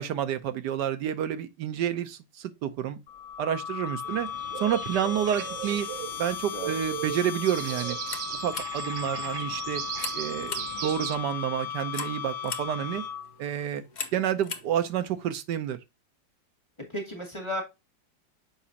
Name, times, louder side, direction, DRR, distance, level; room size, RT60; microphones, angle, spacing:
voice 1, 0.0-3.0 3.4-4.3 4.6-5.9 6.2-8.0 8.4-9.8 10.1-13.0 13.4-13.8 14.1-15.8, right 10 dB, 70° right, 1.3 m, -29 dB
sound 1, 3.1-13.5, left 8 dB, 60° left, 0.9 m, -36 dB
sound 2, 4.0-11.2, right 12 dB, 90° right, 1.4 m, -38 dB
sound 3, 7.9-15.3, left 5 dB, 80° left, 0.4 m, -42 dB
voice 2, 10.5-10.9 16.9-17.6, equal, 15° left, 2.1 m, -35 dB
7.3 x 4.9 x 2.8 m
omnidirectional pair, 2.0 m